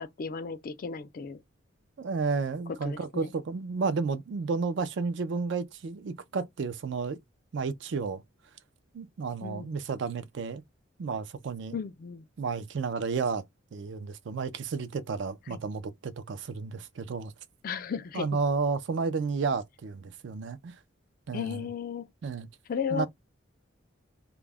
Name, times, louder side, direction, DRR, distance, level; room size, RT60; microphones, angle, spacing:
voice 1, 0.0-1.4 2.8-3.3 9.4-9.8 11.7-12.3 15.5-15.6 17.6-18.4 21.3-22.1 22.7-23.1, left 6 dB, 45° left, 0.3 m, -35 dB
voice 2, 2.0-7.2 7.5-8.2 8.9-10.6 11.0-11.8 12.4-13.4 13.7-17.3 18.1-20.8 21.3-21.7 22.2-22.5 22.9-23.1, right 4 dB, 65° right, 0.4 m, -32 dB
2.2 x 2.0 x 3.3 m
head